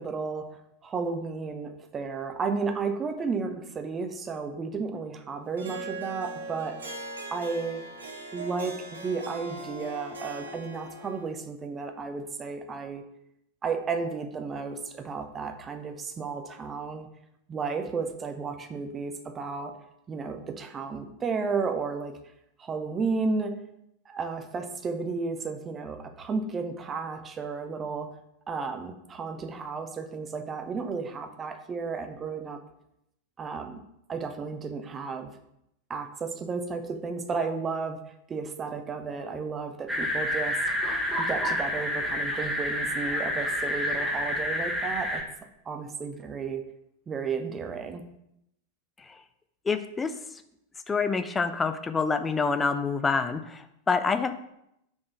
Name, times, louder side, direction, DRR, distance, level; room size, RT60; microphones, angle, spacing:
voice 1, 0.0-6.8 7.3-7.8 8.3-13.1 13.6-17.1 17.5-19.8 20.1-22.2 22.6-23.6 24.1-28.1 28.5-32.6 33.4-33.8 34.1-35.3 35.9-38.0 38.3-40.6 41.2-45.2 45.7-46.7 47.1-48.0, right 4 dB, 20° right, 7 dB, 0.7 m, -33 dB
Harp, 5.6-11.4, right 2 dB, 70° right, 1.0 m, -40 dB
sound 1, 39.9-45.2, left 1 dB, 5° right, 1.2 m, -29 dB
voice 2, 49.7-50.1 50.9-54.3, left 5 dB, 15° left, 10 dB, 0.5 m, -27 dB
6.2 x 3.7 x 5.8 m, 0.79 s
figure-of-eight pair, 90°, 0 cm